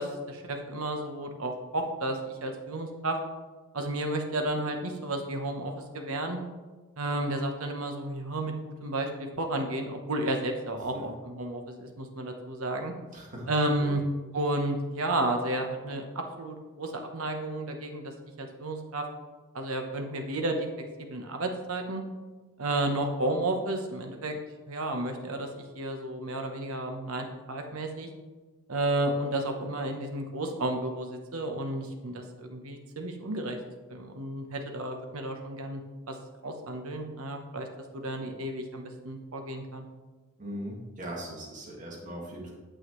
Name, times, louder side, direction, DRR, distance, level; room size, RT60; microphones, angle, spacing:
voice 1, 0.0-3.2 3.7-6.4 7.0-12.9 13.5-14.0 14.3-18.1 18.4-19.1 19.5-20.7 21.0-22.0 22.6-24.3 24.7-28.1 28.7-33.6 33.9-35.8 36.1-36.2 36.4-37.7 37.9-39.9, right 1 dB, 65° right, 4 dB, 1.0 m, -32 dB
voice 2, 13.1-13.5 13.8-13.9 40.4-42.5, equal, 35° right, -2 dB, 1.8 m, -39 dB
8.8 x 7.2 x 3.1 m, 1.3 s
head